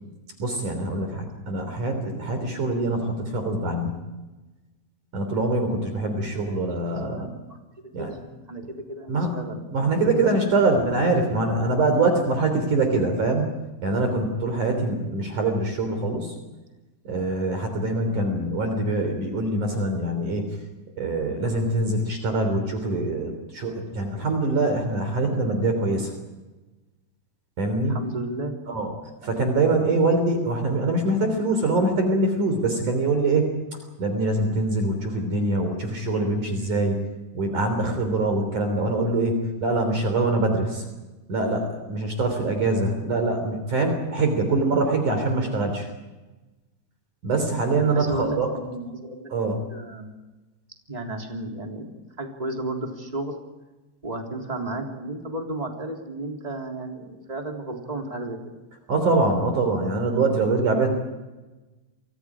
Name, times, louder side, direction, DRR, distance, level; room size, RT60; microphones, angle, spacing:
voice 1, 0.4-3.9 5.1-7.3 7.9-8.1 9.1-9.4 9.7-13.5 13.8-16.3 17.0-20.5 21.0-26.1 27.6-28.0 28.7-28.9 29.2-33.5 34.0-37.0 37.3-40.8 41.3-45.9 47.2-48.5 49.3-49.6 58.9-60.9, right 2 dB, 45° right, 5 dB, 4.4 m, -24 dB
voice 2, 6.7-7.6 7.8-10.6 27.9-28.5 29.2-29.3 47.9-50.1 50.9-53.3 54.0-58.4, right 2 dB, 10° right, 1 dB, 2.6 m, -34 dB
30.0 x 25.0 x 5.0 m, 1.2 s
omnidirectional pair, 5.3 m